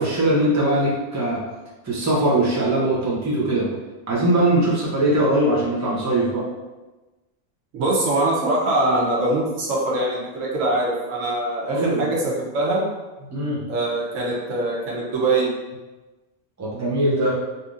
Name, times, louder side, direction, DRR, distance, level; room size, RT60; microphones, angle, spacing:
voice 1, 0.0-1.4 1.8-3.7 4.1-6.4 11.7-12.1 13.3-13.6 16.6-17.4, right 1 dB, 20° right, -6 dB, 0.6 m, -21 dB
voice 2, 7.7-12.8 13.7-15.5, right 2 dB, 90° right, -3 dB, 1.2 m, -23 dB
3.3 x 2.7 x 2.5 m, 1.1 s
omnidirectional pair, 1.3 m